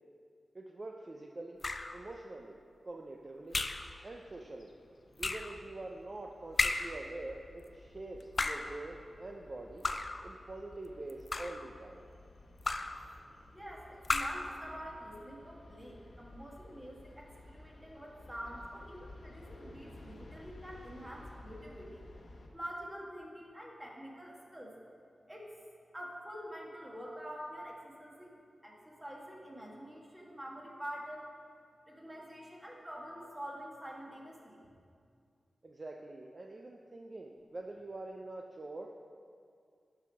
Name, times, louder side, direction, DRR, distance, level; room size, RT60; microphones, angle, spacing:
voice 1, 0.5-1.6 1.9-2.6 2.8-3.6 4.0-4.7 5.2-9.8 10.2-12.1 35.6-39.2, right 2 dB, 40° right, 1 dB, 0.5 m, -45 dB
sound 1, 1.6-2.0 3.5-3.9 5.2-5.6 6.6-7.0 8.2-8.8 9.8-10.3 11.1-11.7 12.6-13.0 14.0-14.5, left 3 dB, 45° left, 0.4 m, -34 dB
sound 2, 4.3-22.5, left 2 dB, 75° left, 1.0 m, -55 dB
voice 2, 13.5-22.0 22.5-24.8 25.3-25.5 25.9-28.4 28.6-31.3 31.9-34.6, equal, 10° right, -2 dB, 1.5 m, -46 dB
11.5 x 4.7 x 5.2 m, 2.3 s
wide cardioid pair, 105°, 0 cm